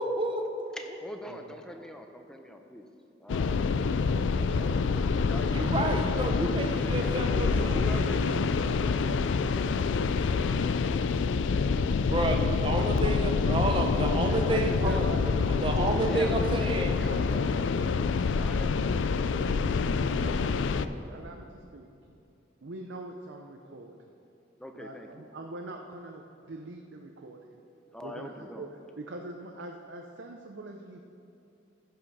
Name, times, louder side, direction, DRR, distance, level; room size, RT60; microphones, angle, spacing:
voice 1, 0.0-0.7 5.5-8.0 12.1-15.0 15.6-17.0, right 1 dB, 25° right, 3 dB, 0.8 m, -30 dB
voice 2, 0.7-2.8 3.2-6.1 7.0-7.2 7.5-8.2 8.7-9.8 10.3-13.2 14.4-15.0 16.0-17.7 18.0-20.4 24.6-25.3 27.9-28.7, equal, 5° left, 4 dB, 0.6 m, -44 dB
sound 1, 3.3-20.9, left 5 dB, 80° left, 0.4 m, -27 dB
voice 3, 6.5-9.3 11.3-11.6 12.7-15.4 15.9-16.6 17.0-18.8 19.4-21.5 21.7-21.9 22.6-23.9 24.7-27.6 28.0-28.7 29.0-31.0, right 2 dB, 75° right, 2 dB, 0.6 m, -43 dB
14.5 x 5.7 x 5.4 m, 2.7 s
head